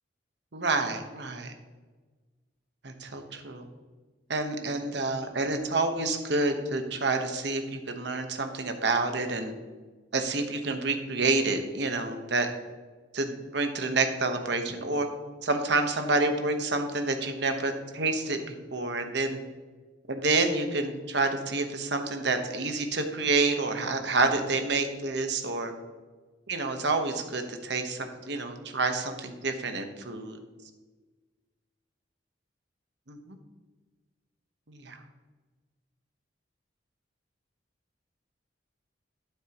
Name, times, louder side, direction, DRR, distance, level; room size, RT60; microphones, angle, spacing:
voice 1, 0.5-1.5 2.8-3.7 4.3-9.5 10.1-12.5 13.1-15.1 15.4-19.4 20.1-25.7 26.5-30.3 33.1-33.4 34.7-35.0, right 3 dB, 65° right, 6 dB, 1.1 m, -28 dB
11.5 x 9.2 x 3.0 m, 1.3 s
head